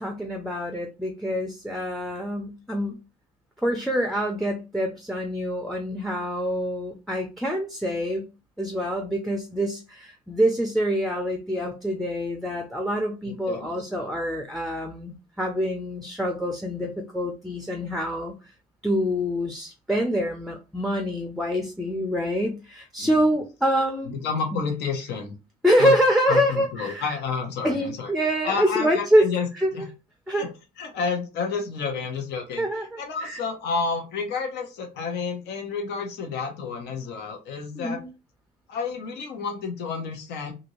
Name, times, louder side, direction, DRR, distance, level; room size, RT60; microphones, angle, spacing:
voice 1, 0.0-3.0 3.6-8.3 8.6-18.3 18.8-24.1 24.5-24.6 25.6-27.2 27.6-29.9 30.3-30.5 32.6-33.4 37.8-38.1, equal, ahead, 4 dB, 0.5 m, -26 dB
voice 2, 13.3-13.7 14.0-14.2 23.0-23.1 24.0-25.3 25.8-25.9 26.3-28.1 28.4-29.5 29.7-29.9 30.3-30.5 30.8-38.0 38.7-40.5, left 5 dB, 80° left, 2 dB, 0.9 m, -30 dB
2.7 x 2.6 x 2.9 m, 0.30 s
cardioid pair, 110°, 17 cm